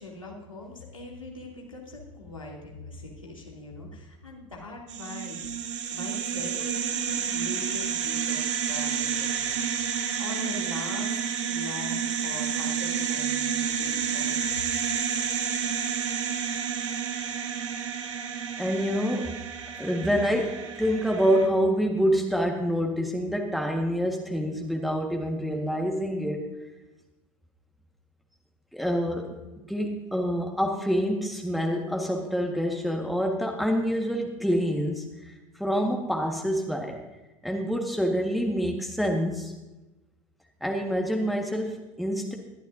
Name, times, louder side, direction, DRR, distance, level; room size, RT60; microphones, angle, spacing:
voice 1, 0.0-5.4 5.9-11.2 11.5-14.4, left 2 dB, 85° left, -3 dB, 2.8 m, -41 dB
sound 1, 4.9-21.5, right 7 dB, 65° right, 1.8 m, -30 dB
voice 2, 18.6-19.4 19.8-26.5 28.7-29.4 29.7-35.3 35.6-37.0 37.4-39.5 40.6-42.4, equal, ahead, 1 dB, 1.7 m, -27 dB
21.0 x 12.5 x 2.8 m, 1.1 s
figure-of-eight pair, 80°, 16 cm